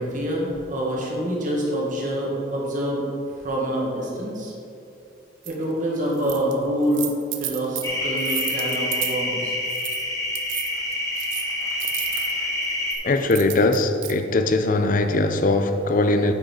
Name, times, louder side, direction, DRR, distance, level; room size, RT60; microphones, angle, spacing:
voice 1, 0.0-3.0 3.4-4.5 5.4-7.1 7.4-9.6, equal, 45° right, 1.7 m, -26 dB
sound 1, 5.4-5.5 6.1-6.5 6.8-9.2 9.7-10.0 10.3-12.3 12.9-14.1, right 13 dB, 70° right, 0.6 m, -32 dB
sound 2, 7.8-12.9, left 1 dB, 15° left, 0.9 m, -27 dB
voice 2, 13.0-16.3, left 2 dB, 45° left, 0.5 m, -20 dB
9.0 x 5.5 x 4.3 m
head